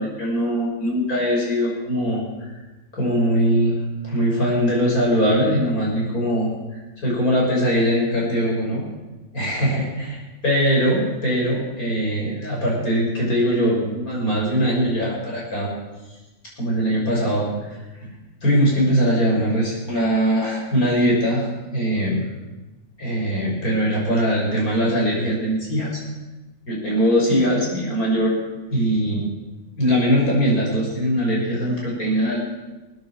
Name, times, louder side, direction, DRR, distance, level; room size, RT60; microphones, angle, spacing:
voice 1, 0.0-2.5 2.9-8.8 9.3-10.2 10.4-15.7 16.6-18.1 18.4-22.2 23.0-26.0 26.7-28.3 28.7-29.2 29.8-32.4, equal, 90° left, -3 dB, 6.5 m, -21 dB
20.5 x 9.4 x 7.5 m, 1.1 s
omnidirectional pair, 1.5 m